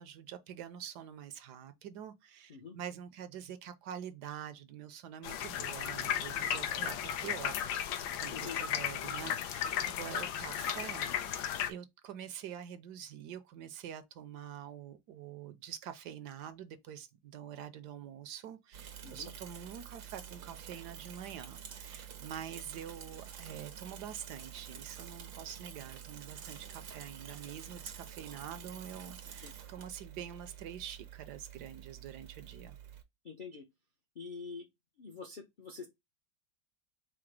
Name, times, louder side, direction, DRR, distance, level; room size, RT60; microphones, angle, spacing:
voice 1, 0.0-32.8, right 9 dB, 75° right, 1.1 m, -46 dB
sound 1, 5.2-11.7, left 9 dB, 85° left, 1.3 m, -35 dB
voice 2, 8.3-8.7 19.0-19.3 29.4-29.5 33.2-33.7 34.2-34.7 35.0-35.9, left 5 dB, 55° left, 0.5 m, -45 dB
Bicycle / Mechanisms, 18.7-33.0, right 9 dB, 90° right, 1.7 m, -49 dB
4.8 x 2.0 x 4.6 m
omnidirectional pair, 2.0 m